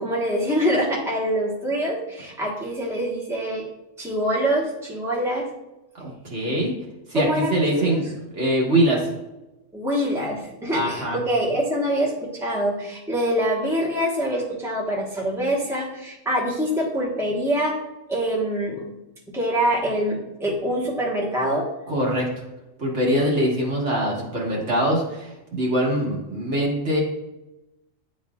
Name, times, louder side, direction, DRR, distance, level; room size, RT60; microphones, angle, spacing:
voice 1, 0.0-3.6 4.0-5.5 7.1-8.0 9.7-17.7 18.1-18.8 19.3-21.6, equal, ahead, -4 dB, 1.1 m, -25 dB
voice 2, 6.0-6.7 7.1-8.1 8.3-9.1 10.7-11.2 21.9-22.3 22.8-27.0, right 1 dB, 60° right, -3 dB, 1.8 m, -23 dB
10.0 x 4.2 x 2.4 m, 0.96 s
omnidirectional pair, 1.4 m